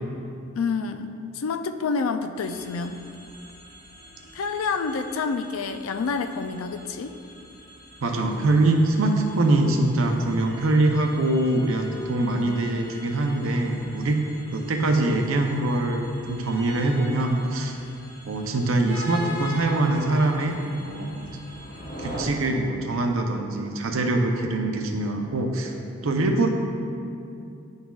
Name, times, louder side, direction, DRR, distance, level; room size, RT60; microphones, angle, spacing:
voice 1, 0.6-3.0 4.3-7.1, left 4 dB, 80° left, 8 dB, 0.4 m, -28 dB
sound 1, 2.4-22.3, equal, 55° left, 1.0 m, -42 dB
voice 2, 8.0-14.2 14.5-17.8 18.3-21.3 22.0-25.8 26.0-26.5, right 2 dB, 75° right, 3 dB, 0.6 m, -23 dB
10.5 x 4.0 x 2.4 m, 2.6 s
head